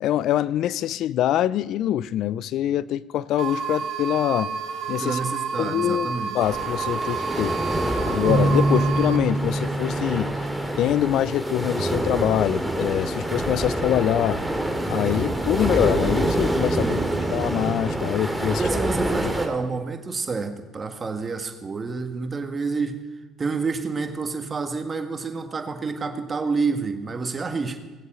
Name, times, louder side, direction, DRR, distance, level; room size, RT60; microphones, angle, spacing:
voice 1, 0.0-4.5 4.9-5.2 5.6-7.5 8.0-10.3 10.8-14.4 14.9-17.0 17.3-18.6 19.2-19.3, left 12 dB, 65° left, 19 dB, 0.4 m, -24 dB
sound 1, 3.4-9.2, right 6 dB, 65° right, 1.2 m, -30 dB
voice 2, 5.0-6.3 16.8-17.4 18.5-23.0 23.4-27.8, right 4 dB, 35° right, 6 dB, 1.8 m, -29 dB
sound 2, 6.4-19.5, right 1 dB, ahead, 2.5 m, -26 dB
sound 3, 8.3-12.0, right 2 dB, 50° right, 1.4 m, -26 dB
18.0 x 8.0 x 7.6 m, 1.2 s
supercardioid pair, 75°, 0 cm